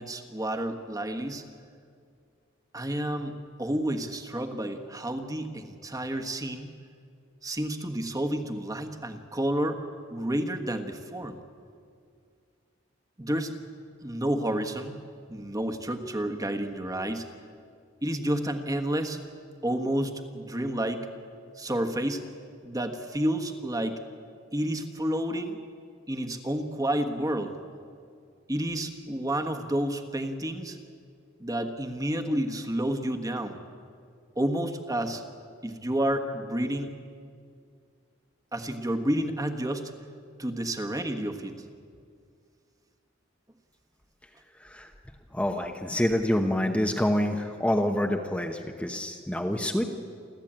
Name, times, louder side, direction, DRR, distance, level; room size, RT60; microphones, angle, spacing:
voice 1, 0.0-1.4 2.7-6.7 7.4-9.8 10.1-11.4 13.2-13.5 14.0-15.0 15.3-17.3 18.0-19.2 19.6-21.1 21.6-22.2 22.6-24.0 24.5-25.6 26.1-27.5 28.5-30.8 31.4-33.6 34.4-35.2 35.6-36.9 38.5-39.9 40.4-41.5, right 1 dB, 20° right, 5 dB, 1.4 m, -30 dB
voice 2, 45.3-49.8, left 1 dB, 5° left, 2 dB, 1.0 m, -27 dB
29.0 x 12.5 x 8.9 m, 2.3 s
head